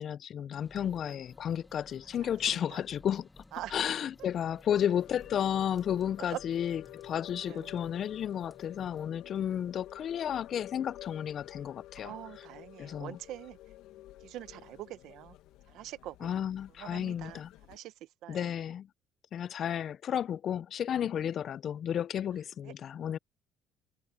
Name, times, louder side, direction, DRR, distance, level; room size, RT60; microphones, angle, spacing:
voice 1, 0.0-3.4 3.7-12.2 12.8-13.2 16.2-17.5 18.3-18.9 19.3-23.2, left 9 dB, 40° left, 0.3 m, -32 dB
sound 1, 0.5-9.1, left 2 dB, 10° left, 1.4 m, -57 dB
voice 2, 2.2-2.8 3.5-3.9 6.3-6.4 7.4-7.8 11.9-13.6 14.2-15.4 15.7-16.4 16.8-17.4 17.7-17.9 18.2-18.5 22.6-22.7, right 14 dB, 65° right, 0.8 m, -44 dB
sound 2, 4.8-17.8, left 14 dB, 80° left, 1.2 m, -51 dB
cardioid pair, 160°, 0 cm